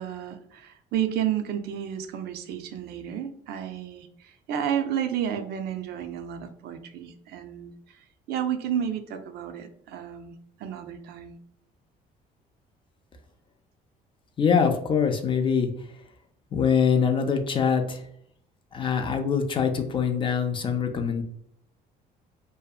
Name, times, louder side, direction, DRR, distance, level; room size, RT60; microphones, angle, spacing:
voice 1, 0.0-8.0 8.3-10.3 10.6-11.4, right 9 dB, 70° right, 8 dB, 0.4 m, -31 dB
voice 2, 14.4-15.7 16.5-18.0 18.7-21.2, left 6 dB, 30° left, 5 dB, 0.3 m, -24 dB
2.6 x 2.1 x 2.3 m, 0.67 s
cardioid pair, 110°, 17 cm